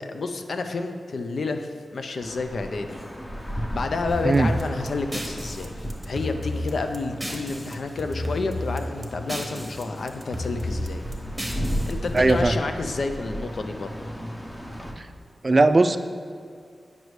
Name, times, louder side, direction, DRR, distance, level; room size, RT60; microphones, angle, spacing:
voice 1, 0.0-3.0 3.7-11.0 11.9-14.0, left 3 dB, 70° left, 7 dB, 0.5 m, -30 dB
sound 1, 2.2-14.9, equal, 15° left, 0.8 m, -35 dB
sound 2, 4.1-7.7 8.0-9.8 10.1-12.4, left 1 dB, 10° right, 1.0 m, -33 dB
voice 2, 12.1-12.6 15.0-15.1 15.4-16.0, right 2 dB, 40° right, 10 dB, 0.3 m, -18 dB
9.4 x 5.2 x 3.2 m, 2.2 s
cardioid pair, 65°, 0 cm